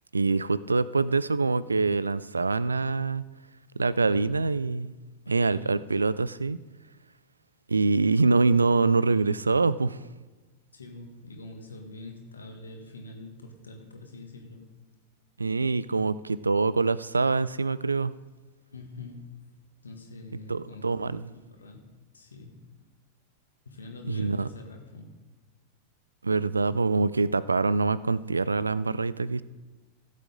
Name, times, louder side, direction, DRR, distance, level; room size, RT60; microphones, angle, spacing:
voice 1, 0.1-3.2 3.8-4.9 5.3-6.6 7.7-10.0 15.4-18.1 20.5-21.3 24.0-24.5 26.2-29.4, right 3 dB, 80° right, 18 dB, 0.3 m, -25 dB
voice 2, 3.8-4.3 5.3-5.8 10.7-14.6 18.7-19.5 19.8-20.8 21.3-21.8 22.1-22.7 23.7-25.2, left 3 dB, 75° left, 3 dB, 1.8 m, -44 dB
16.0 x 7.4 x 3.8 m, 1.2 s
figure-of-eight pair, 90°, 0 cm